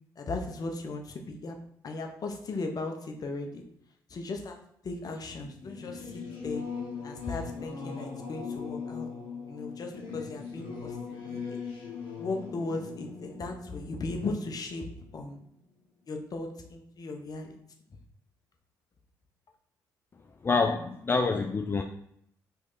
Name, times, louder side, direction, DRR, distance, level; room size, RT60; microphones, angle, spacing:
voice 1, 0.2-1.6 1.8-3.5 4.1-4.6 4.8-6.6 7.0-9.1 9.5-10.9 11.2-11.6 12.2-14.9 15.1-15.4 16.1-17.6, left 3 dB, 45° left, 3 dB, 0.8 m, -37 dB
Singing / Musical instrument, 5.5-15.6, left 5 dB, 70° left, 1.1 m, -40 dB
voice 2, 20.4-21.8, left 4 dB, 25° left, 5 dB, 0.3 m, -26 dB
3.1 x 2.7 x 3.8 m, 0.71 s
hypercardioid pair, 50°, 9 cm